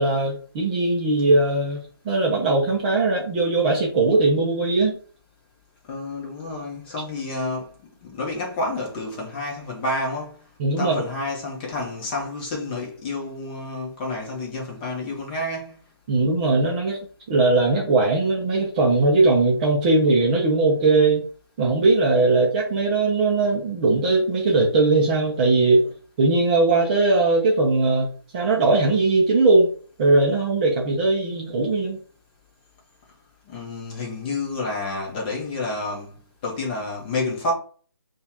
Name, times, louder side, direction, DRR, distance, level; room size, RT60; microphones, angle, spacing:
voice 1, 0.0-5.0 10.6-11.0 16.1-17.0 17.3-21.3 21.6-25.9 26.2-29.7 30.0-32.0, right 3 dB, 20° right, 0.6 m, -20 dB
voice 2, 5.9-7.7 8.0-10.4 10.8-15.8 33.5-36.1 36.4-37.5, left 2 dB, 20° left, 1.1 m, -29 dB
6.7 x 2.5 x 2.9 m
figure-of-eight pair, 155°, 13 cm